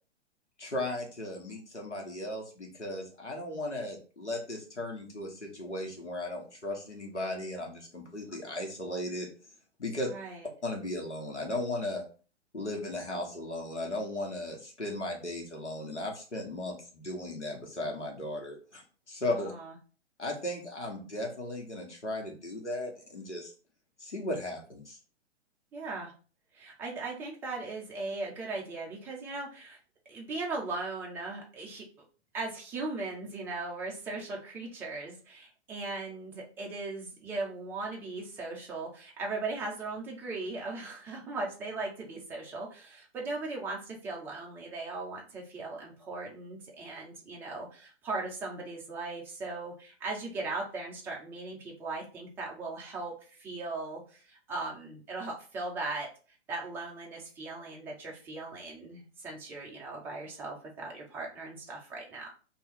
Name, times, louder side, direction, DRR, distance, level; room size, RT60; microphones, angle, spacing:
voice 1, 0.6-9.3 9.8-10.1 10.6-12.0 12.5-19.5 20.2-23.5 24.0-25.0, left 1 dB, 90° left, 0 dB, 1.2 m, -36 dB
voice 2, 10.1-10.5 19.3-19.7 25.7-26.1 26.5-29.8 30.1-31.8 32.3-56.1 56.5-62.3, right 3 dB, 5° right, -1 dB, 0.4 m, -38 dB
2.9 x 2.6 x 3.4 m, 0.38 s
figure-of-eight pair, 115°, 34 cm